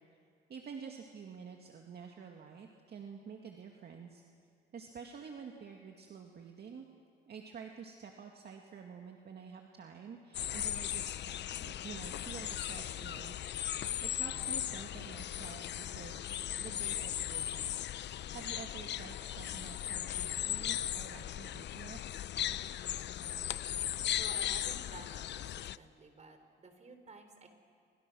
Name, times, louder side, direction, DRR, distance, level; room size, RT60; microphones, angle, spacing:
voice 1, 0.5-4.2 4.7-6.9 7.3-11.2 11.6-13.4 13.7-17.7 18.1-22.0, right 6 dB, 55° right, 2 dB, 2.1 m, -49 dB
sound 1, 10.3-25.8, left 11 dB, 60° left, 0.6 m, -37 dB
voice 2, 24.2-27.5, right 3 dB, 35° right, 7 dB, 4.0 m, -53 dB
29.5 x 25.0 x 6.3 m, 2.3 s
cardioid pair, 90°, 20 cm